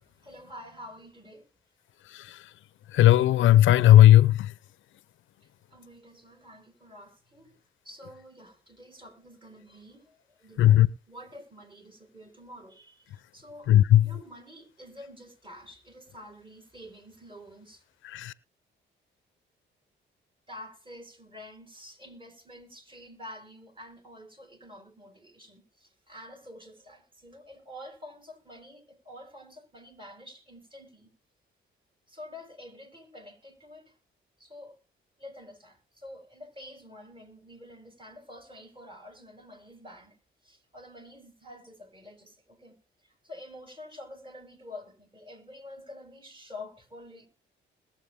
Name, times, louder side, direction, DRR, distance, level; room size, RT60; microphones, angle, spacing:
voice 1, 0.2-1.5 5.7-7.5 7.8-17.8 20.5-31.1 32.1-33.9 34.4-34.8 35.2-40.2 40.4-42.7 43.2-47.3, left 1 dB, 25° right, 4.8 m, -48 dB
voice 2, 2.9-4.3 10.6-10.9 13.7-14.0 18.1-18.3, left 13 dB, 75° left, 0.6 m, -16 dB
21.0 x 7.4 x 3.5 m
cardioid pair, 90°, 20 cm